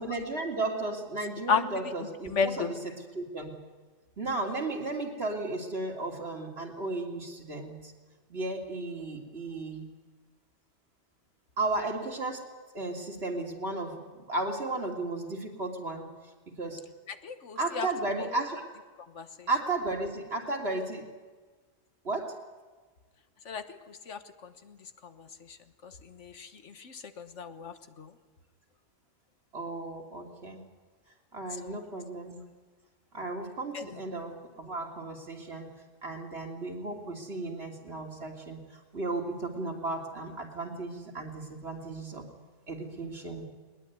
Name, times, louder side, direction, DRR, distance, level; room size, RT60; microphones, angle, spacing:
voice 1, 0.0-3.5 4.2-7.9 8.3-9.9 11.6-12.4 12.7-16.1 16.6-16.8 17.6-18.6 19.5-21.0 22.0-22.3 29.5-30.6 31.3-32.4 33.1-35.7 36.0-38.6 38.9-42.3 42.7-43.4, right 2 dB, 55° right, 1 dB, 3.2 m, -34 dB
voice 2, 2.3-2.7 17.2-17.9 19.2-19.3 23.5-23.6 24.1-24.2 26.2-26.5 26.8-28.1 31.6-31.7 33.7-33.8, left 6 dB, 75° left, 10 dB, 1.6 m, -31 dB
21.0 x 20.5 x 9.4 m, 1.4 s
omnidirectional pair, 1.2 m